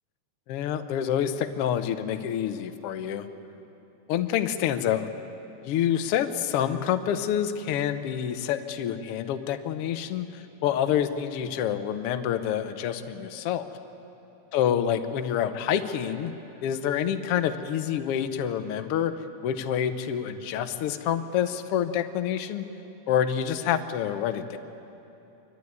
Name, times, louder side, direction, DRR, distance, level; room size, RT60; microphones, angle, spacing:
voice 1, 0.5-3.3 4.1-5.1 5.6-13.7 14.5-16.3 16.6-19.1 19.4-22.6 23.1-24.6, left 9 dB, 75° left, 9 dB, 1.4 m, -27 dB
25.5 x 12.5 x 9.4 m, 2.9 s
omnidirectional pair, 3.5 m